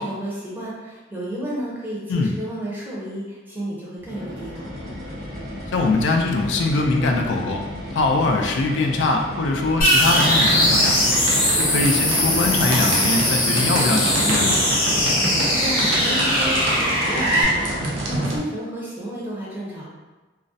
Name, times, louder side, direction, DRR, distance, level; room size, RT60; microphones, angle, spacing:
voice 1, 0.0-4.7 15.1-19.9, right 1 dB, 10° right, -7 dB, 0.5 m, -32 dB
sound 1, 4.0-12.8, left 1 dB, 65° right, 0.8 m, -34 dB
voice 2, 5.7-7.6 7.9-11.0 11.5-14.6, left 3 dB, 75° left, 3 dB, 0.3 m, -22 dB
sound 2, 9.8-17.4, left 1 dB, 50° left, 0.8 m, -20 dB
sound 3, 10.0-18.4, right 1 dB, 80° right, 0.4 m, -26 dB
2.4 x 2.0 x 2.6 m, 1.2 s
head